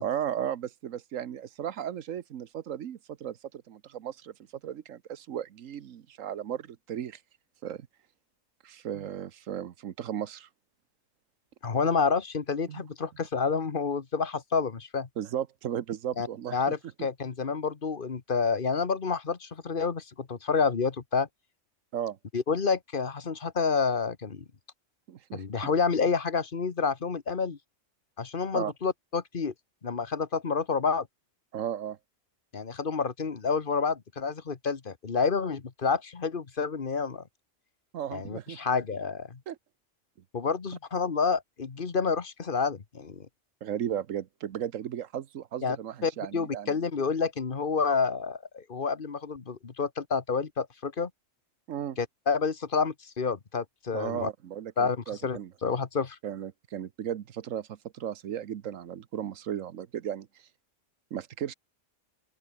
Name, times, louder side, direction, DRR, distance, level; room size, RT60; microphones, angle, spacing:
voice 1, 0.0-4.3 4.6-7.2 7.6-7.9 8.6-10.5 12.7-12.8 15.2-16.6 21.9-22.2 25.1-25.7 28.5-28.7 31.5-32.0 37.9-38.6 39.5-39.6 43.6-46.7 51.7-52.0 53.9-55.5 56.2-60.3 61.1-61.5, right 10 dB, 90° right, 1.3 m, -35 dB
voice 2, 11.6-15.1 16.2-16.3 16.5-21.3 22.3-24.4 25.3-27.6 28.2-29.5 29.8-31.1 32.5-37.2 38.1-39.4 40.3-43.3 45.6-45.8 46.0-51.1 52.0-54.3 54.8-56.2, left 5 dB, 45° left, 1.5 m, -29 dB
open air
omnidirectional pair, 1.3 m